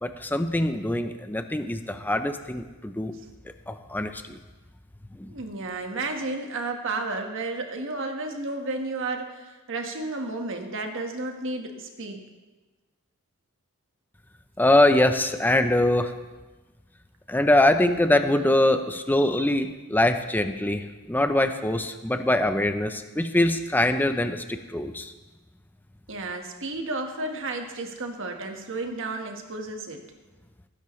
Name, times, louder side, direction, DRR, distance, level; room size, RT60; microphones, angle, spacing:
voice 1, 0.0-3.1 3.7-4.4 5.2-5.3 14.6-16.1 17.3-25.1, left 1 dB, 10° left, 8 dB, 0.6 m, -23 dB
voice 2, 5.3-12.2 26.1-30.0, right 2 dB, 60° right, 4 dB, 1.5 m, -32 dB
19.5 x 10.0 x 3.2 m, 1.2 s
head